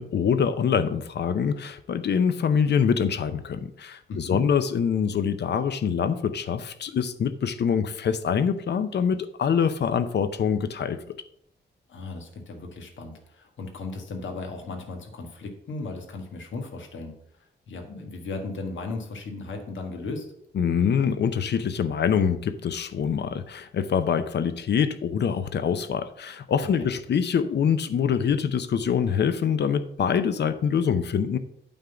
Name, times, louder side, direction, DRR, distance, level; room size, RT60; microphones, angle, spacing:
voice 1, 0.0-11.0 20.6-31.4, left 7 dB, 65° left, 11 dB, 0.7 m, -25 dB
voice 2, 4.1-4.4 11.9-17.1 17.7-20.3 26.6-26.9, left 3 dB, 90° left, 4 dB, 1.6 m, -36 dB
8.8 x 3.8 x 6.9 m, 0.72 s
wide cardioid pair, 155°, 19 cm